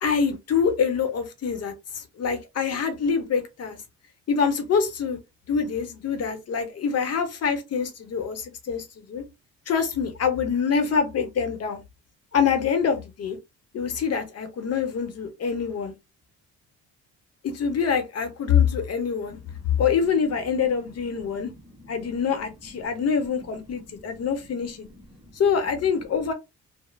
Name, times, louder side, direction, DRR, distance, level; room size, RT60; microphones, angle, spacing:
voice 1, 0.0-3.8 4.3-5.2 5.5-9.2 9.7-11.8 12.3-13.4 13.7-15.9 17.4-19.4 19.8-21.5 21.9-24.9 25.3-26.3, left 6 dB, 55° left, 0.8 m, -25 dB
voice 2, 19.2-19.8 21.3-22.2 22.7-22.9 23.7-24.0 24.7-25.3, left 1 dB, 10° right, 1.0 m, -50 dB
3.1 x 2.1 x 2.2 m
cardioid pair, 90°, 30 cm